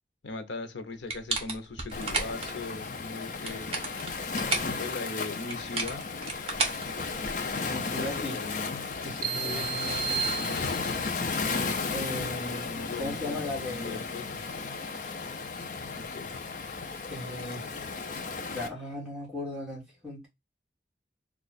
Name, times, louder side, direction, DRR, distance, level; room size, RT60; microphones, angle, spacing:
voice 1, 0.2-3.8 4.7-6.1 7.9-8.7 9.3-10.8 12.6-14.5 15.9-16.3, left 3 dB, 85° left, 0.7 m, -39 dB
sound 1, 1.1-2.5 3.3-4.8 5.5-7.5, right 3 dB, 30° right, 0.8 m, -32 dB
Waves surf, 1.9-18.7, left 4 dB, 45° left, 0.5 m, -34 dB
voice 2, 7.6-8.4 9.0-9.6 11.9-12.6 13.0-14.0 15.6-15.7 17.1-17.7 18.5-20.3, left 2 dB, 5° right, 1.7 m, -37 dB
sound 2, 9.2-11.2, right 9 dB, 50° right, 0.3 m, -33 dB
3.0 x 2.4 x 4.0 m
head